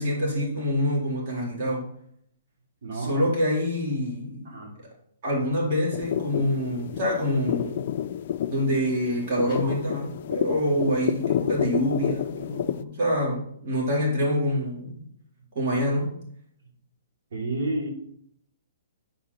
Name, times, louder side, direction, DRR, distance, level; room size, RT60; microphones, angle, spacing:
voice 1, 0.0-1.9 2.9-4.5 5.2-7.9 8.5-15.0 15.5-16.1, equal, 45° right, -3 dB, 3.6 m, -26 dB
voice 2, 2.8-3.3 4.4-4.7 17.3-17.9, right 2 dB, 65° right, -3 dB, 3.8 m, -30 dB
sound 1, 5.9-12.8, left 10 dB, 50° left, 0.4 m, -30 dB
10.0 x 4.9 x 4.2 m, 0.67 s
hypercardioid pair, 155°, 0 cm